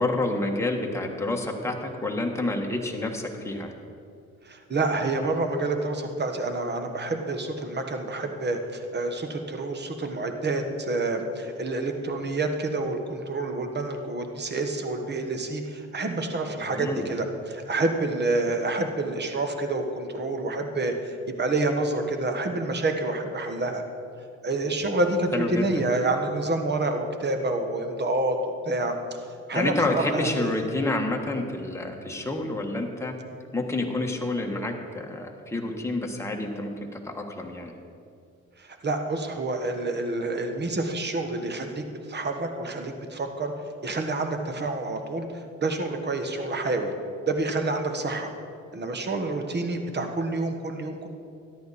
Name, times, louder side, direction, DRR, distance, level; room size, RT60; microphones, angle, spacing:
voice 1, 0.0-3.7 16.6-17.1 24.8-24.9 25.3-25.8 29.5-33.1 33.5-37.7, left 2 dB, 10° left, 1 dB, 1.5 m, -29 dB
voice 2, 4.4-23.8 24.4-28.9 29.5-30.6 38.6-43.5 43.8-46.9 47.3-48.3 48.7-51.1, right 2 dB, 35° right, 5 dB, 1.4 m, -28 dB
13.5 x 10.5 x 4.2 m, 2.5 s
cardioid pair, 90°, 30 cm